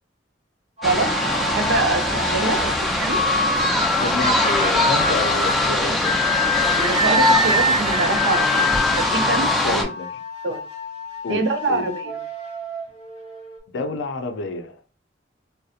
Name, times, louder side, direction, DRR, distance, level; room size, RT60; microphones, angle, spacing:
sound 1, 0.8-9.8, left 1 dB, ahead, 0.4 m, -22 dB
sound 2, 0.8-13.6, left 2 dB, 35° right, 0.8 m, -26 dB
voice 1, 1.5-3.2 6.7-8.7 9.0-9.8 10.4-10.6 11.3-12.2, right 3 dB, 70° right, 0.5 m, -25 dB
voice 2, 4.0-6.2 9.6-10.1 11.2-11.9 13.7-14.9, left 3 dB, 85° left, 0.4 m, -29 dB
2.7 x 2.0 x 2.3 m
head